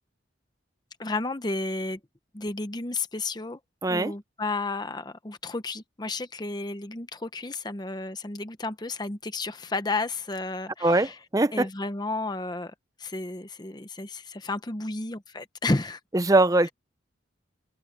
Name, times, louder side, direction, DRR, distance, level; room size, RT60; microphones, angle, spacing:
voice 1, 1.0-2.0 2.3-3.6 3.9-11.1 11.5-12.7 13.0-16.0, left 2 dB, 20° left, 0.8 m, -32 dB
voice 2, 3.8-4.1 10.8-11.7 16.1-16.7, right 2 dB, 15° right, 0.5 m, -22 dB
open air
head